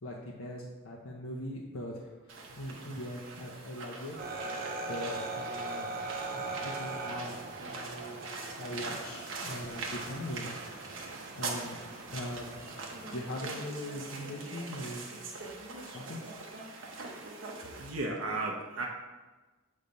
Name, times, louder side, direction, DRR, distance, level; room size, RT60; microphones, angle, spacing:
voice 1, 0.0-4.1 4.5-5.9 6.4-10.5 11.1-11.8 12.1-12.6 13.1-15.1 15.8-16.3, left 1 dB, 75° left, -3 dB, 0.8 m, -41 dB
sound 1, 2.3-17.9, right 3 dB, 65° right, 1.0 m, -43 dB
sound 2, 4.2-13.3, right 3 dB, 40° right, 0.6 m, -41 dB
voice 2, 17.7-18.9, right 2 dB, 90° right, -1 dB, 0.8 m, -34 dB
6.9 x 3.2 x 5.2 m, 1.2 s
head